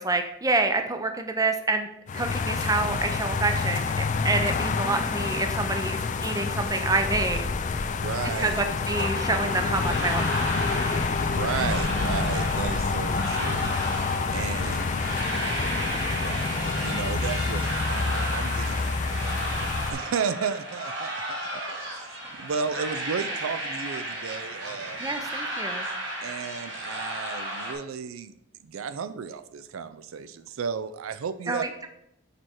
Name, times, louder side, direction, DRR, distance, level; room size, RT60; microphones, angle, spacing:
voice 1, 0.0-1.9 2.1-7.5 8.4-10.5 25.0-25.9 31.5-31.7, right 3 dB, 15° right, 6 dB, 0.5 m, -27 dB
sound 1, 2.1-19.9, left 4 dB, 35° left, 0.4 m, -28 dB
sound 2, 6.9-7.3 8.3-8.7 9.7-10.1 11.1-11.5 12.6-13.0 14.0-14.4 15.4-15.8 16.8-17.2 18.2-18.6 19.7-20.1 21.1-21.4, equal, 40° right, 1.8 m, -47 dB
voice 2, 7.9-8.6 11.2-14.9 16.1-19.4 19.9-25.0 26.2-28.3 28.6-31.6, right 6 dB, 80° right, 12 dB, 0.4 m, -34 dB
sound 3, 9.0-27.7, right 1 dB, 65° right, 2.0 m, -34 dB
6.6 x 4.6 x 4.3 m, 0.79 s
head